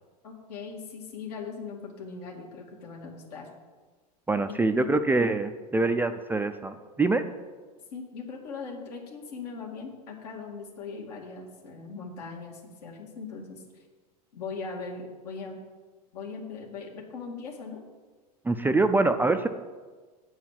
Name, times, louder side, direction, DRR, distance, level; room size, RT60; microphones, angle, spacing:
voice 1, 0.2-3.5 4.5-4.9 7.9-13.6 14.3-15.6 16.1-17.8 18.6-18.9, left 4 dB, 75° left, -1 dB, 2.1 m, -40 dB
voice 2, 4.3-7.2 18.4-19.5, right 3 dB, 10° right, 8 dB, 0.4 m, -24 dB
8.2 x 4.7 x 7.4 m, 1.4 s
hypercardioid pair, 100°, 21 cm